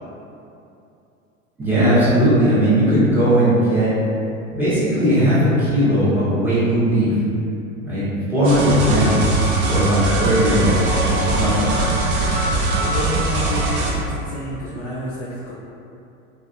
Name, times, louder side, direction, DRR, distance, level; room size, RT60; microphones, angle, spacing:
voice 1, 1.6-3.9 4.5-7.2 7.8-9.4 9.7-11.7, equal, 5° right, -13 dB, 0.9 m, -18 dB
sound 1, 8.4-13.9, right 2 dB, 35° right, 0.4 m, -21 dB
voice 2, 12.7-15.5, left 1 dB, 30° left, -9 dB, 0.4 m, -29 dB
2.4 x 2.3 x 2.6 m, 2.7 s
figure-of-eight pair, 85°, 41 cm